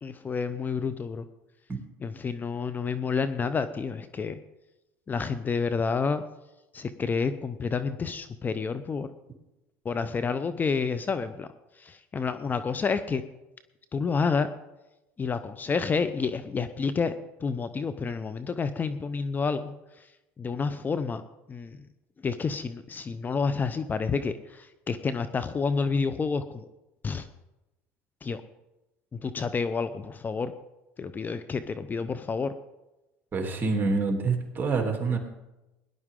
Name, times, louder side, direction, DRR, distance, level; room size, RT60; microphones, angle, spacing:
voice 1, 0.0-1.3 2.0-4.4 5.1-6.2 6.7-9.1 9.8-11.5 11.8-13.2 13.9-14.5 15.2-20.1 20.4-21.2 21.5-21.8 22.2-26.7 27.0-27.3 28.2-28.4 29.1-30.5 31.0-32.5, left 5 dB, 30° left, 11 dB, 0.7 m, -29 dB
voice 2, 33.3-35.2, right 4 dB, 35° right, 2 dB, 3.1 m, -26 dB
18.0 x 11.0 x 3.8 m, 0.98 s
supercardioid pair, 85°, 6 cm